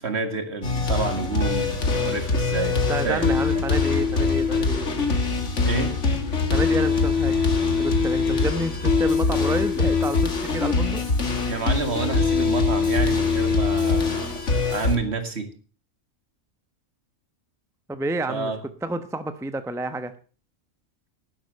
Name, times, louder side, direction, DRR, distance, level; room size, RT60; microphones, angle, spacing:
voice 1, 0.0-3.6 5.6-6.0 11.5-14.4 14.7-15.5 18.3-18.6, right 4 dB, 55° right, 8 dB, 2.1 m, -29 dB
sound 1, 0.6-15.0, left 4 dB, 60° left, 2.3 m, -23 dB
voice 2, 2.9-4.9 6.5-7.4 7.8-11.0 17.9-18.5 18.8-20.1, right 2 dB, 5° right, 10 dB, 0.8 m, -29 dB
11.5 x 11.5 x 6.7 m, 0.40 s
omnidirectional pair, 1.4 m